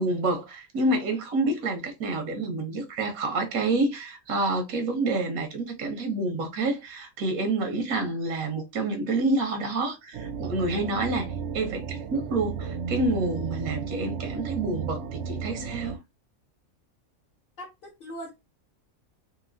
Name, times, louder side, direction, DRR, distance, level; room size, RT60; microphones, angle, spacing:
voice 1, 0.0-16.0, right 2 dB, 85° right, 1.1 m, -28 dB
sound 1, 10.1-16.0, right 6 dB, 65° right, 0.7 m, -33 dB
voice 2, 17.6-18.3, equal, 50° left, 0.8 m, -40 dB
3.0 x 2.7 x 2.5 m
omnidirectional pair, 1.4 m